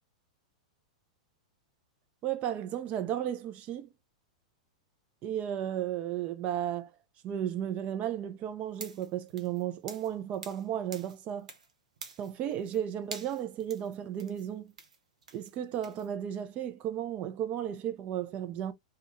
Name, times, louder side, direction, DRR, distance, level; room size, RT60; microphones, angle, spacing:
voice 1, 2.2-3.9 5.2-6.9 7.2-11.5 12.2-14.7 15.3-18.7, right 10 dB, 35° right, 0.5 m, -34 dB
sound 1, 8.7-10.7 10.9-11.7 12.0-12.8 13.1-16.1, right 4 dB, 80° right, 0.6 m, -47 dB
2.3 x 2.2 x 2.9 m
hypercardioid pair, 105°, 4 cm